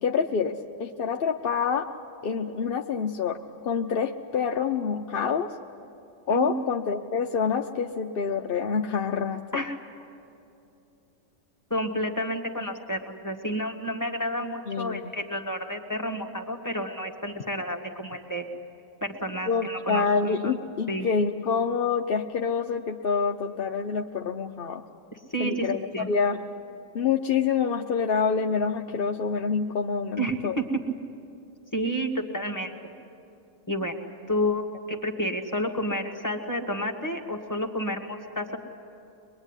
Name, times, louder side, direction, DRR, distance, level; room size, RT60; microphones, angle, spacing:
voice 1, 0.0-1.9 2.2-5.5 6.3-9.6 14.7-15.0 19.5-24.8 25.4-26.4 26.9-30.6, left 6 dB, 50° left, 3 dB, 0.8 m, -27 dB
voice 2, 11.7-18.5 19.0-20.5 20.9-21.1 25.3-26.1 30.2-30.8 31.7-32.8 33.7-34.0 34.3-38.6, equal, 15° left, 2 dB, 1.7 m, -30 dB
24.0 x 22.0 x 9.7 m, 2.9 s
omnidirectional pair, 1.4 m